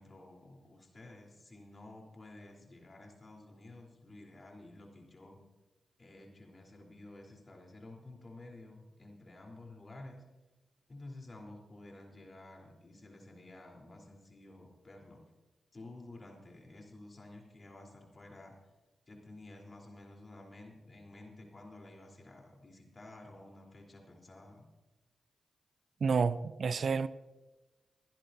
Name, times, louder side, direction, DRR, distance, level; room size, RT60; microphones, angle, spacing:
voice 1, 0.0-5.4 6.0-10.2 10.9-15.2 15.7-18.6 19.1-24.7, left 2 dB, 45° left, 3.7 m, -52 dB
voice 2, 26.0-27.1, right 5 dB, 65° right, 0.4 m, -29 dB
25.5 x 10.5 x 2.7 m
supercardioid pair, 40°, 0 cm